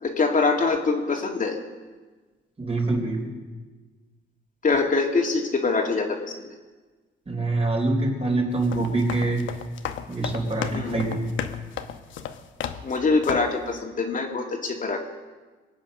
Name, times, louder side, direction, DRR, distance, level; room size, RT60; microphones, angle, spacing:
voice 1, 0.0-1.6 4.6-6.3 10.7-11.0 12.8-15.0, left 4 dB, 40° left, 1 dB, 2.2 m, -24 dB
voice 2, 2.6-3.2 7.3-9.5 10.1-11.2, right 2 dB, 30° right, 0 dB, 4.4 m, -25 dB
sound 1, 8.5-13.0 13.2-13.6, left 9 dB, 75° left, 1.0 m, -34 dB
22.5 x 8.9 x 6.6 m, 1.3 s
cardioid pair, 90°, 20 cm